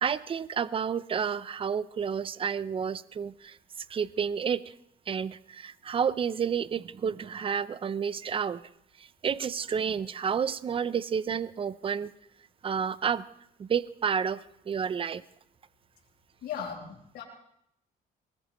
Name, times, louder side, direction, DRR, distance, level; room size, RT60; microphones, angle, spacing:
voice 1, 0.0-3.6 3.9-4.6 5.1-8.6 9.2-12.1 12.6-13.2 13.6-15.2, right 7 dB, 30° right, 16 dB, 0.6 m, -30 dB
voice 2, 16.4-17.2, left 7 dB, 75° left, -5 dB, 4.4 m, -37 dB
22.5 x 19.5 x 3.1 m, 0.76 s
cardioid pair, 110°, 17 cm